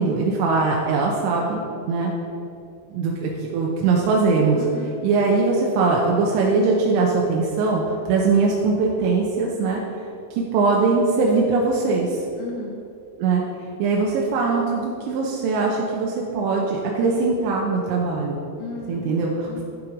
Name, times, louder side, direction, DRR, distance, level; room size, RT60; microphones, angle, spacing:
voice 1, 0.0-1.6 1.9-2.1 2.9-4.6 5.0-9.8 10.3-12.2 13.2-13.4 13.8-18.4 18.9-19.6, right 4 dB, 80° right, -2 dB, 3.0 m, -21 dB
voice 2, 4.6-5.0 12.4-12.8 18.6-19.6, left 3 dB, 80° left, -2 dB, 2.8 m, -35 dB
11.0 x 5.8 x 5.1 m, 2.6 s
omnidirectional pair, 5.4 m